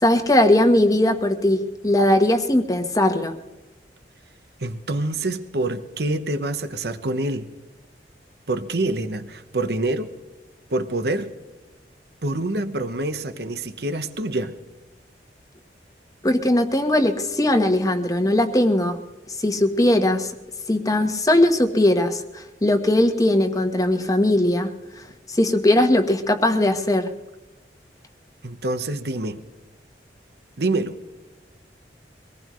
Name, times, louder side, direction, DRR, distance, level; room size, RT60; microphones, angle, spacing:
voice 1, 0.0-3.4 16.2-19.0 19.3-20.3 20.7-27.1, left 1 dB, 20° left, 6 dB, 1.2 m, -19 dB
voice 2, 4.6-7.5 8.5-10.1 10.7-11.3 12.2-14.5 28.4-29.4 30.6-31.0, right 2 dB, 60° right, 10 dB, 1.1 m, -26 dB
23.5 x 19.0 x 3.1 m, 1.1 s
head